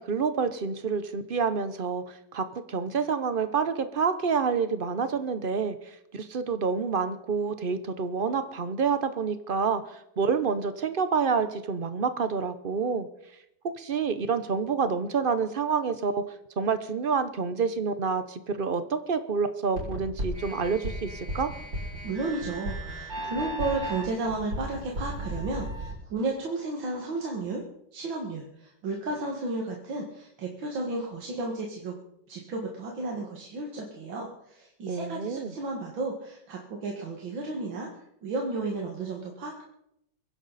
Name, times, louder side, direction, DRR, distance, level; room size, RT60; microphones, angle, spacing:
voice 1, 0.0-13.1 13.6-16.2 16.6-21.5 34.9-35.5, right 5 dB, 50° right, 11 dB, 0.6 m, -28 dB
sound 1, 19.8-25.9, right 1 dB, 70° right, 5.6 m, -35 dB
voice 2, 22.0-27.6 27.9-32.0 32.3-39.6, right 3 dB, 90° right, 0 dB, 2.6 m, -33 dB
23.5 x 10.5 x 4.1 m, 0.79 s
omnidirectional pair, 2.1 m